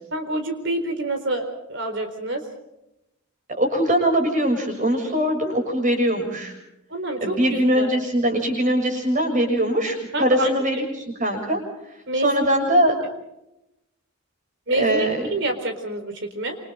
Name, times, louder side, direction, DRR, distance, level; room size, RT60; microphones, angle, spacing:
voice 1, 0.1-2.5 6.9-7.9 10.1-10.5 12.1-12.5 12.9-13.0 14.7-16.6, right 2 dB, 55° right, 6 dB, 4.3 m, -27 dB
voice 2, 3.6-6.5 7.2-10.8 11.2-11.6 12.2-12.9 14.7-15.3, right 1 dB, 35° right, 4 dB, 6.9 m, -21 dB
28.0 x 27.5 x 3.8 m, 0.87 s
head